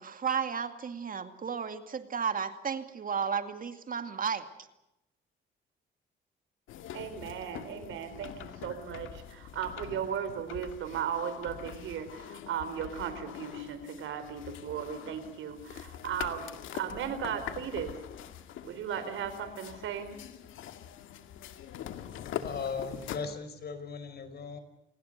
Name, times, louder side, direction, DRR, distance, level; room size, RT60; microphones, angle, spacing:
voice 1, 0.0-4.5, right 6 dB, 45° right, 9 dB, 2.3 m, -33 dB
sound 1, 6.7-23.2, left 10 dB, 85° left, 2.1 m, -44 dB
voice 2, 6.9-18.0 18.6-20.1, right 8 dB, 80° right, 10 dB, 4.5 m, -36 dB
voice 3, 22.0-24.6, left 5 dB, 55° left, 11 dB, 5.2 m, -38 dB
28.5 x 20.0 x 6.7 m, 0.88 s
cardioid pair, 90°, 20 cm